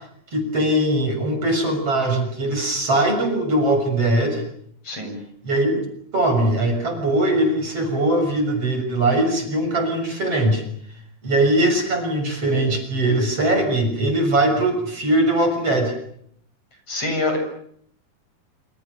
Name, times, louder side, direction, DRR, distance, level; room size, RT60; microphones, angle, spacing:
voice 1, 0.3-4.4 5.4-5.8 6.1-10.6 11.2-15.9, right 1 dB, 40° right, 5 dB, 7.4 m, -21 dB
voice 2, 4.8-5.2 16.9-17.4, left 2 dB, 40° left, 4 dB, 8.5 m, -25 dB
28.5 x 28.0 x 6.9 m, 0.67 s
omnidirectional pair, 4.0 m